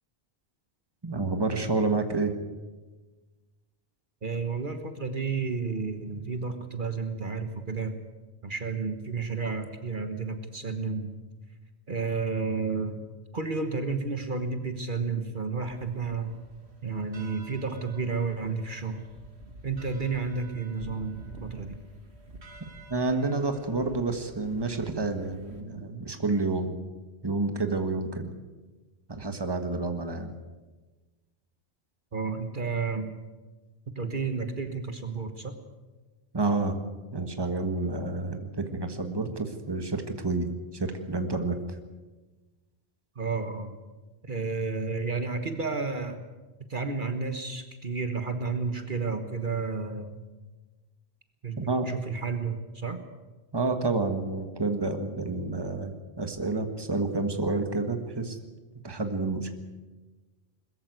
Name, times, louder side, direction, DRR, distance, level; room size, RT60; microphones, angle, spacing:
voice 1, 1.0-2.3 22.9-26.8 27.2-28.3 29.1-30.3 36.3-36.8 37.1-40.5 40.7-41.8 51.6-51.9 53.5-58.4 58.8-59.5, right 3 dB, 25° right, 7 dB, 1.6 m, -29 dB
voice 2, 4.2-7.9 8.4-11.1 11.9-13.0 13.3-16.3 16.8-19.1 19.6-21.7 32.1-33.1 33.9-35.5 43.1-43.8 44.2-46.2 46.7-50.2 51.4-53.0, right 4 dB, 50° right, 8 dB, 1.5 m, -31 dB
sound 1, 15.7-25.6, right 2 dB, 90° right, 2.5 m, -49 dB
21.5 x 14.5 x 9.4 m, 1.2 s
omnidirectional pair, 1.1 m